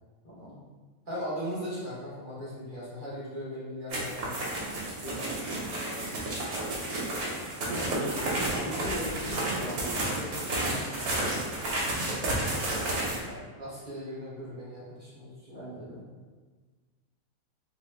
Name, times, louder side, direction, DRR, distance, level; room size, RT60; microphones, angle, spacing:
voice 1, 0.2-0.6 5.0-5.3 7.7-11.7 15.5-16.0, equal, 40° left, -11 dB, 0.6 m, -40 dB
voice 2, 1.1-4.4 12.6-15.8, equal, 35° right, -10 dB, 1.2 m, -39 dB
sound 1, 3.9-13.2, right 1 dB, 85° right, 1.3 m, -31 dB
3.5 x 2.2 x 3.2 m, 1.4 s
omnidirectional pair, 1.5 m